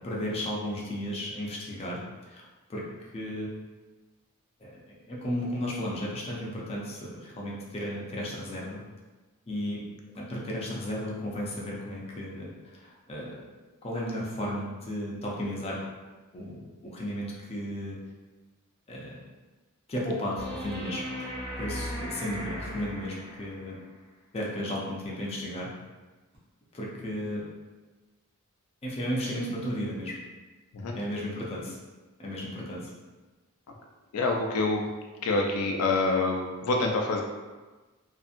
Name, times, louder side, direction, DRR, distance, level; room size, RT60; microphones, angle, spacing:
voice 1, 0.0-2.0 2.3-2.4 2.7-2.8 3.1-3.5 4.6-4.8 5.1-8.8 9.5-9.8 10.1-13.4 13.8-15.8 16.3-18.0 18.9-19.2 19.9-21.3 21.6-23.8 24.3-25.7 26.7-27.5 28.8-30.2 30.9-31.8 32.2-32.9, equal, 25° left, -4 dB, 0.5 m, -34 dB
sound 1, 20.3-23.7 26.3-26.4, equal, 50° right, 0.8 m, -37 dB
voice 2, 34.1-34.9 35.2-37.2, left 3 dB, 85° left, 1 dB, 0.4 m, -26 dB
2.7 x 2.5 x 2.4 m, 1.2 s
head